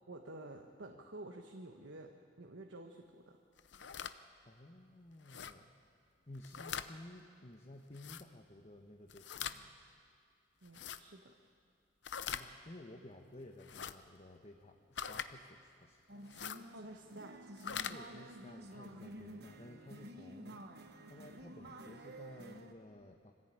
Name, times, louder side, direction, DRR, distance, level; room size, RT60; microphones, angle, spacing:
voice 1, 0.1-2.1 2.4-3.4 10.6-11.3 16.7-17.5 18.9-19.1, right 2 dB, 80° right, 3 dB, 1.3 m, -50 dB
sound 1, 3.6-4.1 5.3-5.5 6.4-6.9 7.9-8.2 9.1-9.6 10.7-11.0 12.0-12.5 13.6-13.9 15.0-15.3 16.3-16.6 17.5-18.0, left 8 dB, 65° left, 0.7 m, -42 dB
voice 2, 4.4-5.7 6.3-9.9 12.2-16.0 17.9-20.6 21.1-23.3, left 1 dB, 35° left, 2 dB, 1.2 m, -54 dB
sound 2, 16.1-22.7, right 1 dB, 55° right, 1.4 m, -51 dB
24.5 x 15.0 x 9.0 m, 2.2 s
head